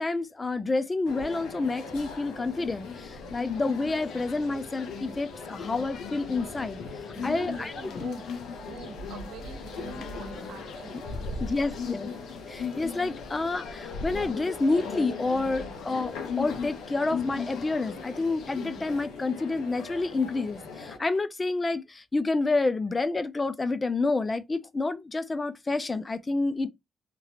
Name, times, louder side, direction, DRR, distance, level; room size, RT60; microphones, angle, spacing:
voice 1, 0.0-6.8 7.2-7.7 11.4-12.1 12.5-26.7, left 3 dB, 25° left, 0.4 m, -29 dB
sound 1, 1.0-21.0, left 4 dB, 90° left, 1.1 m, -41 dB
sound 2, 2.5-19.0, left 5 dB, 70° left, 0.6 m, -39 dB
voice 2, 7.1-12.1, right 5 dB, 80° right, 0.9 m, -45 dB
3.0 x 2.4 x 2.9 m
cardioid pair, 75°, 0 cm